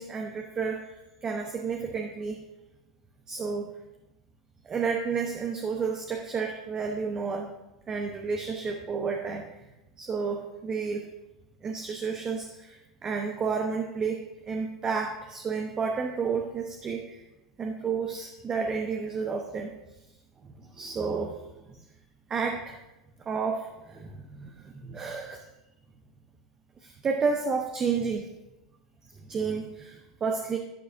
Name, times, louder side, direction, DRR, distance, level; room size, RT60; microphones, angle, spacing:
voice 1, 0.0-2.4 3.3-3.7 4.6-7.5 7.9-9.5 10.0-11.1 11.6-17.2 17.6-19.7 20.4-21.8 22.3-22.8 23.2-25.4 26.8-28.3 29.1-30.6, right 5 dB, 25° right, 3 dB, 1.0 m, -31 dB
12.0 x 10.5 x 2.7 m, 0.97 s
figure-of-eight pair, 85°, 3 cm